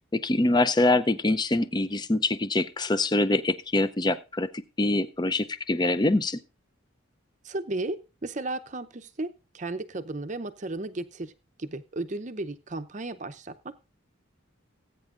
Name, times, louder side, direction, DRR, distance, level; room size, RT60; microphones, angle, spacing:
voice 1, 0.1-4.5 4.8-6.4, left 2 dB, 20° left, 13 dB, 0.5 m, -24 dB
voice 2, 7.4-11.3 11.6-13.5, right 2 dB, 35° right, 10 dB, 0.7 m, -34 dB
19.5 x 9.0 x 2.5 m, 0.31 s
head